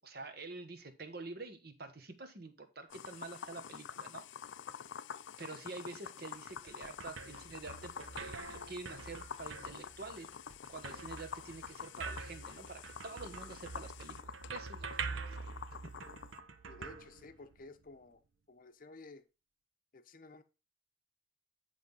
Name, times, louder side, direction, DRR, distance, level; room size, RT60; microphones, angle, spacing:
voice 1, 0.0-4.3 5.4-15.5 15.8-15.9, right 3 dB, 50° right, 7 dB, 1.2 m, -48 dB
sound 1, 2.9-16.4, left 7 dB, 70° left, 0.4 m, -48 dB
sound 2, 6.3-17.8, right 4 dB, 80° right, 0.9 m, -46 dB
voice 2, 16.6-19.3 19.9-20.4, left 3 dB, 45° left, 10 dB, 0.7 m, -54 dB
10.0 x 3.5 x 5.5 m, 0.30 s
head